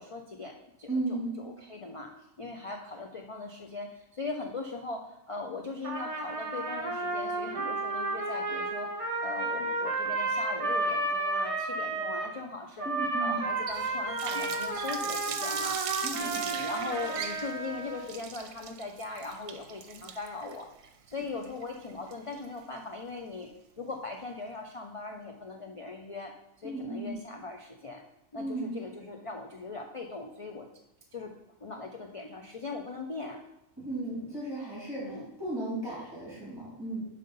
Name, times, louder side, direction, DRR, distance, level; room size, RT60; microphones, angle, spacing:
voice 1, 0.0-2.1 2.4-8.9 9.2-12.9 13.2-15.8 16.2-20.7 21.1-23.5 23.8-26.3 26.6-28.0 28.3-30.7 31.1-31.3 31.6-33.4 35.0-35.3, left 3 dB, 50° left, 2 dB, 0.3 m, -39 dB
voice 2, 0.9-1.4 12.8-13.4 16.0-16.2 21.2-21.3 26.6-27.1 28.4-28.8 33.8-37.1, right 2 dB, 20° right, -7 dB, 2.5 m, -35 dB
Trumpet, 5.8-12.3 12.8-18.1, right 2 dB, 35° right, 0.6 m, -32 dB
Water tap faucet, 13.7-22.6, right 7 dB, 75° right, 1.0 m, -39 dB
7.6 x 3.7 x 5.4 m, 0.85 s
omnidirectional pair, 1.4 m